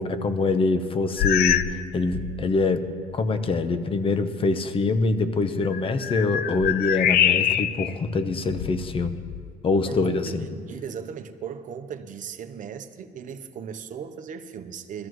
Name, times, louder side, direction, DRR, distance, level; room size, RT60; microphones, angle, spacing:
voice 1, 0.0-9.2 9.6-10.5, left 3 dB, 30° left, 10 dB, 0.9 m, -24 dB
sound 1, 1.2-1.8 2.1-2.5 3.1-3.2 5.6-7.9 8.5-9.5, left 11 dB, 65° left, 0.4 m, -25 dB
voice 2, 9.8-15.1, right 7 dB, 50° right, 7 dB, 0.9 m, -37 dB
21.0 x 14.0 x 3.1 m, 2.1 s
cardioid pair, 110°, 17 cm